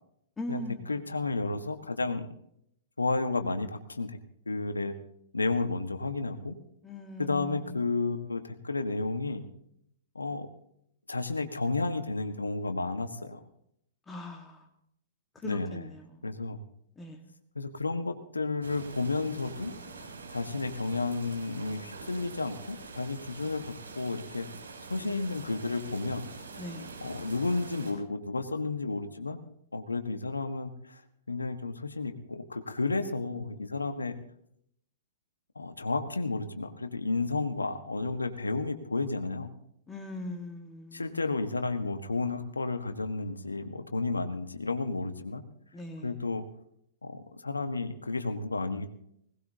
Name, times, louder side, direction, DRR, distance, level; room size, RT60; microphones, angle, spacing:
voice 1, 0.4-1.0 6.8-7.8 14.1-14.7 15.3-16.3 17.0-17.3 26.6-26.9 39.9-41.2 45.7-46.2, left 2 dB, 15° left, 3 dB, 1.6 m, -41 dB
voice 2, 0.9-2.3 3.0-4.2 4.5-4.9 5.3-6.6 7.2-9.5 10.1-10.5 11.1-13.4 15.4-15.9 16.2-16.6 17.5-19.7 20.3-24.5 24.9-26.3 27.0-29.4 29.7-31.0 31.3-34.2 35.5-39.5 40.9-45.4 46.0-46.5 47.0-48.9, left 3 dB, 85° left, 8 dB, 1.3 m, -32 dB
sound 1, 18.6-27.9, right 4 dB, 75° right, 6.3 m, -45 dB
20.5 x 18.5 x 2.8 m, 0.72 s
figure-of-eight pair, 110°, 0 cm